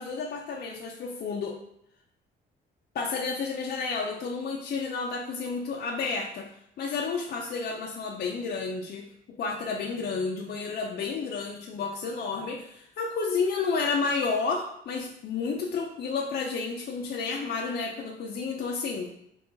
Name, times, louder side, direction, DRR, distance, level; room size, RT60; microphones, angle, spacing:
voice 1, 0.0-1.6 2.9-6.5 6.8-9.1 9.4-19.1, left 4 dB, 50° left, -1 dB, 0.4 m, -31 dB
3.0 x 2.2 x 3.8 m, 0.77 s
cardioid pair, 90°, 20 cm